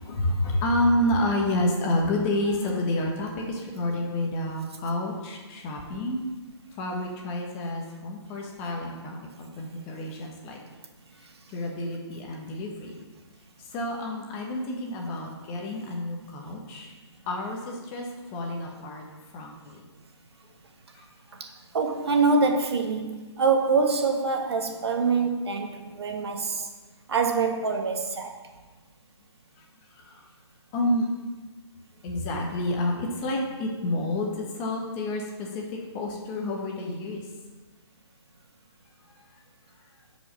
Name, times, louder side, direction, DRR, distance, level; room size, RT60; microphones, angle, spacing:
voice 1, 0.0-6.2 6.8-10.6 11.5-13.0 13.7-16.9 17.3-18.1 18.3-19.0 19.3-19.8 20.9-21.0 30.0-30.2 30.7-31.1 32.0-35.6 35.9-37.2, left 1 dB, 15° left, 0 dB, 1.0 m, -29 dB
voice 2, 21.7-26.7 27.1-28.3, right 4 dB, 65° right, 4 dB, 1.4 m, -25 dB
10.5 x 5.2 x 6.2 m, 1.3 s
hypercardioid pair, 165°, 15 cm